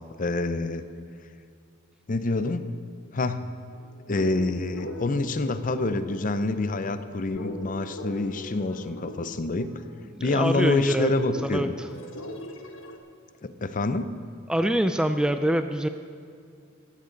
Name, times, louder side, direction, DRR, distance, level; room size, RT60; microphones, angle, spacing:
voice 1, 0.2-0.8 2.1-2.7 3.1-3.5 4.1-9.7 10.2-11.7 13.4-14.1, left 2 dB, 40° left, 11 dB, 0.6 m, -27 dB
sound 1, 3.7-13.0, left 1 dB, 65° left, 1.2 m, -40 dB
voice 2, 10.1-11.9 14.5-15.9, equal, 5° right, 8 dB, 0.3 m, -25 dB
16.0 x 13.5 x 3.9 m, 2.4 s
head